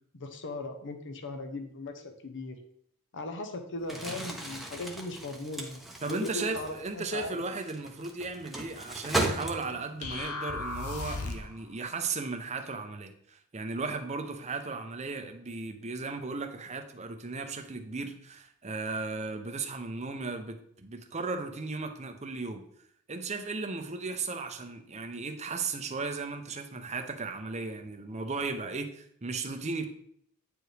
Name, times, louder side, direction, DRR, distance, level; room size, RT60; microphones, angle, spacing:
voice 1, 0.1-2.6 3.1-7.4, left 2 dB, 60° left, 6 dB, 0.9 m, -38 dB
Crumpling crinkling, 3.8-10.0, right 1 dB, ahead, 0.9 m, -36 dB
voice 2, 6.0-22.6 23.1-29.9, right 3 dB, 30° right, 6 dB, 0.7 m, -36 dB
sound 1, 10.0-11.6, left 3 dB, 80° left, 0.9 m, -35 dB
9.1 x 4.7 x 3.3 m, 0.67 s
head